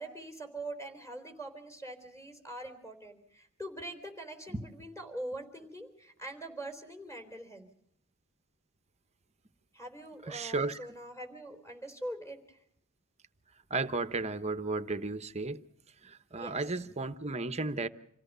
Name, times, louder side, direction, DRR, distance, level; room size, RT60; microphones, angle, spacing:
voice 1, 0.0-7.7 9.7-12.6 16.4-16.6, right 1 dB, 15° left, 3.9 m, -43 dB
voice 2, 10.2-10.8 13.7-15.6 16.0-17.9, right 3 dB, 30° right, 0.9 m, -34 dB
27.5 x 16.0 x 6.8 m
head